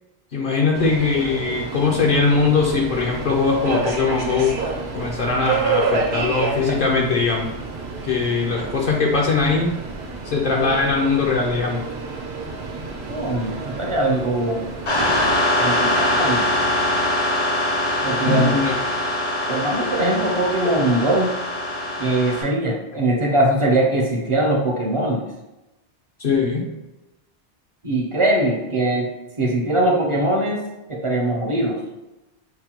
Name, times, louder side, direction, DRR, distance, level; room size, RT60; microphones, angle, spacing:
voice 1, 0.3-4.5 4.9-7.5 8.0-9.7 10.2-11.8 18.2-18.8 20.6-20.7 26.2-26.7, left 4 dB, 60° left, -2 dB, 0.7 m, -21 dB
Subway metro underground, 0.7-15.4, right 4 dB, 80° right, 1.0 m, -29 dB
voice 2, 13.1-14.6 15.6-16.5 18.0-18.6 19.5-21.3 22.0-25.2 27.8-29.1 29.4-30.6 30.9-31.8, right 1 dB, 40° right, -1 dB, 0.5 m, -21 dB
sound 1, 14.9-22.4, left 1 dB, 90° left, 1.4 m, -22 dB
5.7 x 2.1 x 2.8 m, 0.98 s
omnidirectional pair, 1.1 m